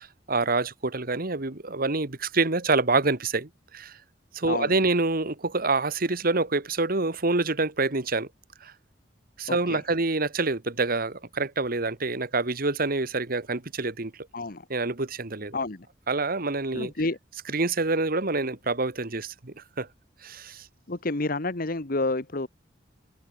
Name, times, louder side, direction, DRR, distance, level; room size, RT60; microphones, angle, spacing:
voice 1, 0.0-4.0 4.3-8.3 8.6-8.7 9.4-14.1 14.7-15.6 16.1-16.9 17.5-19.9 20.2-20.7, right 3 dB, 55° right, 1.8 m, -27 dB
voice 2, 9.5-9.8 14.3-14.6 15.5-15.9 16.7-17.2 20.9-22.5, left 2 dB, 55° left, 1.5 m, -29 dB
head